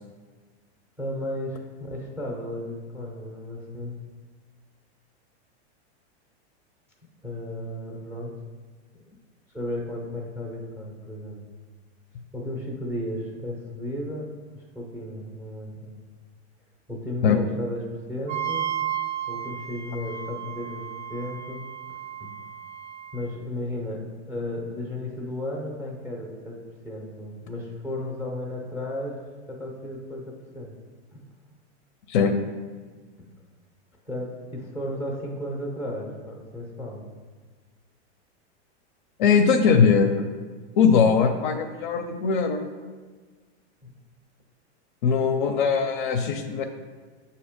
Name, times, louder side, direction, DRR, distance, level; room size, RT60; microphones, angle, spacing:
voice 1, 1.0-4.0 7.2-8.3 9.5-11.4 12.3-14.2 14.5-15.9 16.9-17.8 18.1-18.7 19.3-20.8 21.1-21.7 22.2-22.3 23.1-26.6 26.8-29.2 29.5-30.7 31.1-31.2 34.1-37.0 43.8-43.9, left 1 dB, 5° right, -1 dB, 0.5 m, -34 dB
Wind instrument woodwind instrument, 18.3-23.2, right 10 dB, 90° right, 0.7 m, -33 dB
voice 2, 39.2-40.3 40.8-42.6 45.0-46.6, left 6 dB, 45° left, 7 dB, 0.4 m, -20 dB
7.1 x 2.8 x 4.9 m, 1.4 s
supercardioid pair, 165°, 34 cm